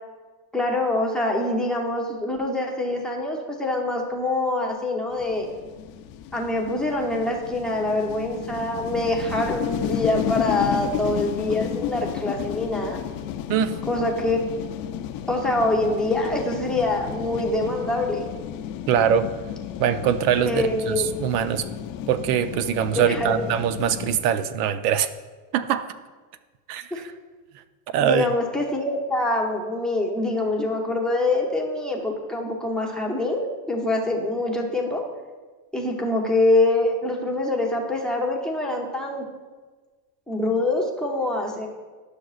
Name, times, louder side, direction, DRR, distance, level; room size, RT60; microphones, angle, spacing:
voice 1, 0.5-5.5 6.3-13.0 13.9-14.4 15.3-18.3 20.5-21.1 22.9-23.5 26.9-27.0 28.0-35.0 35.7-39.2 40.3-41.7, left 2 dB, ahead, 0 dB, 0.7 m, -25 dB
sound 1, 5.1-24.2, left 10 dB, 50° left, 0.5 m, -32 dB
voice 2, 13.5-13.8 18.9-19.3 19.8-21.7 22.1-25.1 25.5-25.9 26.7-27.1 27.9-28.3, right 9 dB, 75° right, 12 dB, 0.7 m, -23 dB
11.0 x 6.5 x 2.4 m, 1.4 s
supercardioid pair, 135°, 46 cm